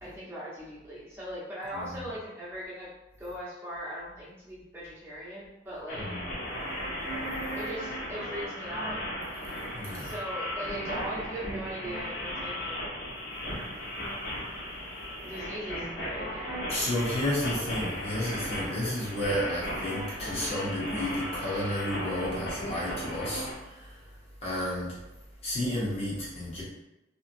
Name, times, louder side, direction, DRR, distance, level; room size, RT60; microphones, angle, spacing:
voice 1, 0.0-2.9 3.2-6.0 7.5-9.0 10.0-13.0 15.2-16.6, equal, 15° right, -9 dB, 1.1 m, -39 dB
sound 1, 5.9-23.5, equal, 70° left, 1.2 m, -36 dB
voice 2, 9.7-10.1 16.7-24.0 24.4-25.0 25.4-26.6, left 1 dB, 35° left, -8 dB, 0.9 m, -32 dB
3.2 x 3.0 x 2.6 m, 0.96 s
head